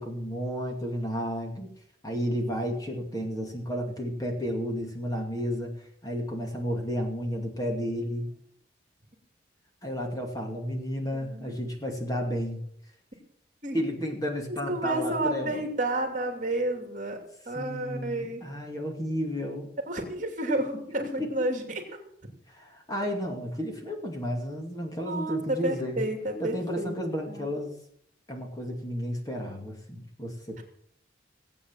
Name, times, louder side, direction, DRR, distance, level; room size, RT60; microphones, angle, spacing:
voice 1, 0.0-1.7 2.0-5.7 6.0-8.3 9.8-12.6 13.7-15.6 17.5-19.7 21.2-21.3 22.5-26.0 26.4-27.7 28.3-30.6, equal, 20° left, 2 dB, 2.5 m, -32 dB
voice 2, 11.1-11.5 13.6-13.8 14.7-17.2 17.5-18.4 19.9-21.8 25.0-26.9 27.3-27.5, right 1 dB, 40° right, 4 dB, 2.8 m, -30 dB
17.5 x 8.7 x 7.4 m, 0.69 s
head